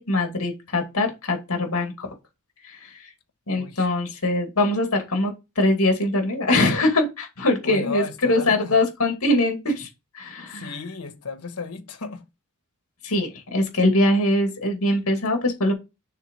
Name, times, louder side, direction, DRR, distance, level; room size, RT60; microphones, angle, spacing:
voice 1, 0.0-2.1 2.6-3.0 3.5-9.9 10.1-10.8 13.0-15.7, left 1 dB, 75° left, 2.2 m, -22 dB
voice 2, 3.6-3.9 7.6-8.8 10.5-12.2, left 5 dB, 90° left, 1.2 m, -34 dB
6.4 x 3.6 x 5.4 m
head